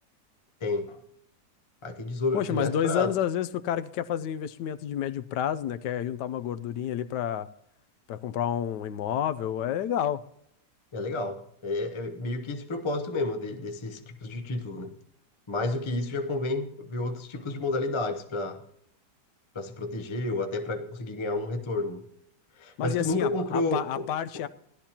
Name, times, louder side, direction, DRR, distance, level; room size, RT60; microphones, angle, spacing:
voice 1, 0.6-1.0 1.8-3.1 10.9-14.9 15.5-18.6 19.5-22.0 22.6-24.1 24.3-24.4, left 2 dB, 35° left, 0.5 m, -31 dB
voice 2, 2.3-7.5 8.1-10.2 22.8-24.5, left 10 dB, 80° left, 1.2 m, -29 dB
16.5 x 12.0 x 2.8 m
omnidirectional pair, 1.8 m